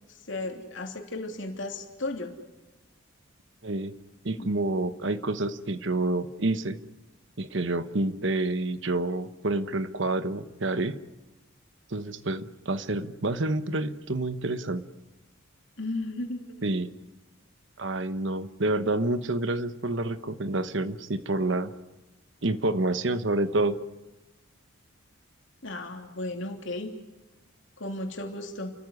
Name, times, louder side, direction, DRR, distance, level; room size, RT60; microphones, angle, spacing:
voice 1, 0.1-2.3 4.4-4.5 15.8-16.6 25.6-26.9 27.8-28.7, left 2 dB, 60° left, 3 dB, 3.2 m, -35 dB
voice 2, 3.6-3.9 4.2-6.8 7.4-11.0 11.9-14.8 16.6-16.9 17.8-21.7 22.4-23.8, right 2 dB, 60° right, 12 dB, 1.1 m, -28 dB
29.5 x 14.5 x 9.7 m, 1.1 s
head